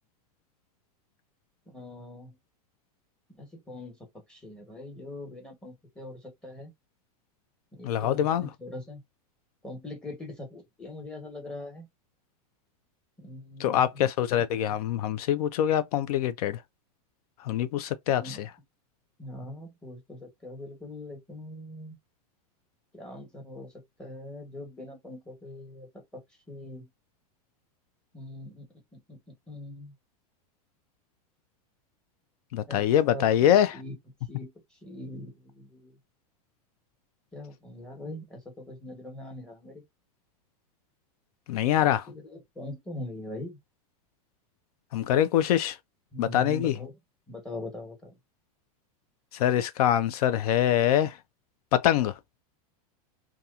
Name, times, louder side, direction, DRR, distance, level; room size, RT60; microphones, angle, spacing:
voice 1, 1.7-2.4 3.4-4.0 4.3-6.7 7.7-9.0 9.6-11.9 13.2-14.0 18.1-18.5 19.2-22.0 22.9-23.7 24.0-25.9 26.5-26.9 28.1-29.2 29.5-29.9 32.7-33.3 33.7-34.0 34.3-34.5 34.8-35.9 37.3-39.8 41.8-43.6 46.1-46.9 47.3-48.2, left 1 dB, 5° left, 1.1 m, -42 dB
voice 2, 7.8-8.5 13.6-16.6 17.4-18.4 32.5-33.8 41.5-42.0 44.9-45.8 46.2-46.7 49.4-51.2 51.7-52.1, left 11 dB, 75° left, 0.4 m, -24 dB
2.7 x 2.3 x 2.3 m
supercardioid pair, 145°, 19 cm